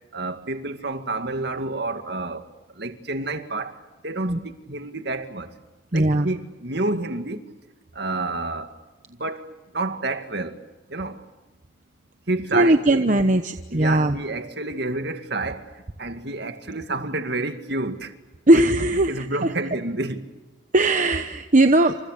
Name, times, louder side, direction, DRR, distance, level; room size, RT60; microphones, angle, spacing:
voice 1, 0.0-2.5 2.7-5.5 5.9-7.5 7.9-8.7 9.1-10.6 10.9-11.2 12.3-13.2 13.7-18.1 18.5-18.7 19.1-20.3, right 2 dB, 60° right, 2.2 m, -29 dB
voice 2, 5.9-6.3 12.5-14.2 18.5-19.2 20.7-22.0, right 1 dB, 40° right, 1.0 m, -18 dB
29.0 x 27.5 x 6.7 m
head